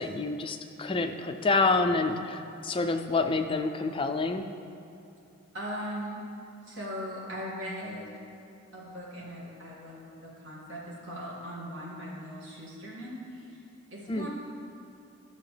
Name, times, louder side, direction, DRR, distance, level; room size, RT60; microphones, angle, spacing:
voice 1, 0.0-4.5 14.1-14.3, left 3 dB, 25° left, 6 dB, 0.3 m, -28 dB
voice 2, 5.5-6.2 6.6-8.1 8.7-13.6 13.9-14.3, equal, 55° right, -5 dB, 2.0 m, -39 dB
13.0 x 6.5 x 3.3 m, 2.6 s
head